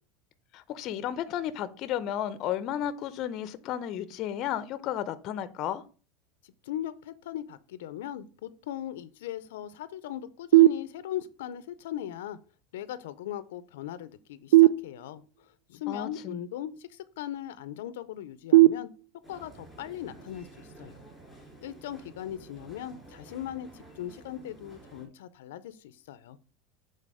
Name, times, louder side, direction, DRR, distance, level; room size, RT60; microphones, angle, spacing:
voice 1, 0.5-5.8 15.9-16.4, left 10 dB, 40° left, 0.6 m, -33 dB
voice 2, 6.4-12.4 12.7-18.9 19.3-21.0 21.6-26.4, left 11 dB, 85° left, 0.5 m, -39 dB
sound 1, 10.5-11.5 14.5-15.5 18.5-19.5, right 16 dB, 85° right, 0.3 m, -21 dB
sound 2, 19.2-25.1, right 2 dB, ahead, 3.0 m, -51 dB
7.5 x 3.8 x 4.8 m
supercardioid pair, 145°, 0 cm